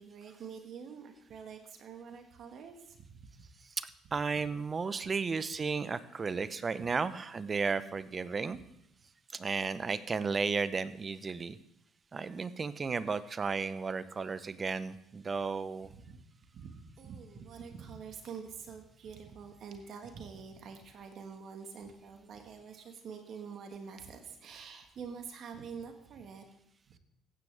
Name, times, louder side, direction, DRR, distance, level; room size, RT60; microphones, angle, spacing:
voice 1, 0.0-3.2 15.9-16.2 16.5-26.4 26.9-27.0, right 6 dB, 55° right, 5 dB, 1.5 m, -46 dB
voice 2, 3.8-8.6 9.3-11.6 12.1-15.9, right 4 dB, 35° right, 15 dB, 0.7 m, -34 dB
15.0 x 9.5 x 3.4 m, 0.76 s
hypercardioid pair, 60°, 0 cm